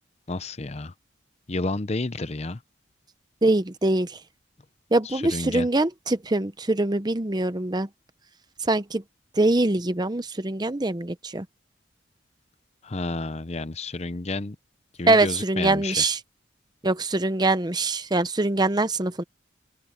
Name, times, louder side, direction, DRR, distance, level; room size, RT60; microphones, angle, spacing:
voice 1, 0.3-0.9 1.5-2.6 5.0-5.7 12.8-14.6 15.0-16.1, left 2 dB, 35° left, 0.7 m, -31 dB
voice 2, 3.4-4.2 4.9-7.9 8.7-9.0 9.4-11.4 15.1-16.2 16.8-19.2, right 2 dB, 20° right, 0.8 m, -23 dB
open air
head